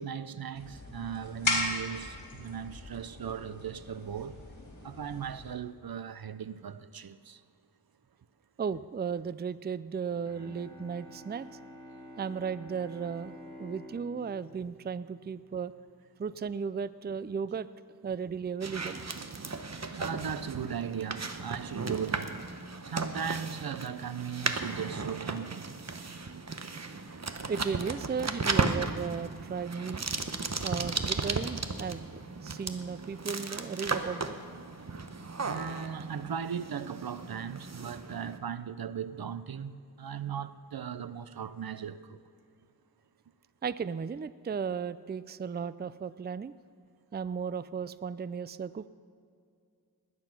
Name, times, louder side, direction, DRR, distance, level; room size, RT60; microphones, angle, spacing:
voice 1, 0.0-4.4 4.8-7.4 20.0-22.4 22.8-25.7 35.4-42.2, right 7 dB, 75° right, 0.7 m, -37 dB
sound 1, 0.5-5.6, left 2 dB, 55° left, 3.2 m, -37 dB
voice 2, 8.6-11.5 12.2-15.7 16.2-17.7 18.0-19.0 27.5-30.1 30.6-34.4 43.6-46.5 47.1-48.9, right 6 dB, 30° right, 0.4 m, -35 dB
Bowed string instrument, 10.2-15.8, equal, 15° left, 3.7 m, -50 dB
sound 2, 18.6-38.4, right 3 dB, 45° right, 1.0 m, -35 dB
19.5 x 9.6 x 6.0 m
wide cardioid pair, 70°, 36 cm